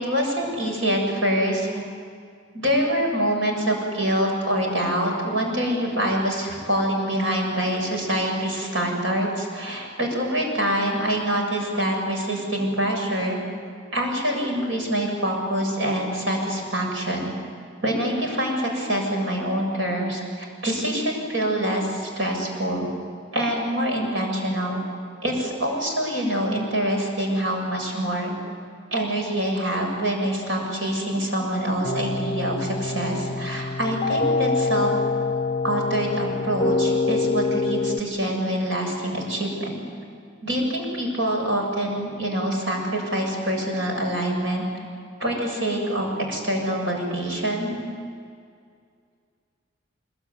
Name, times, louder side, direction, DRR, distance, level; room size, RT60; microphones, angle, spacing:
voice 1, 0.0-1.8 2.5-13.4 13.9-17.3 17.8-22.9 23.3-24.8 25.2-28.3 28.9-34.9 35.6-39.8 40.4-44.7 45.2-47.8, right 1 dB, 85° right, 1 dB, 7.6 m, -25 dB
sound 1, 31.8-38.0, left 3 dB, 35° left, 0.9 m, -25 dB
25.5 x 23.0 x 9.7 m, 2.2 s
head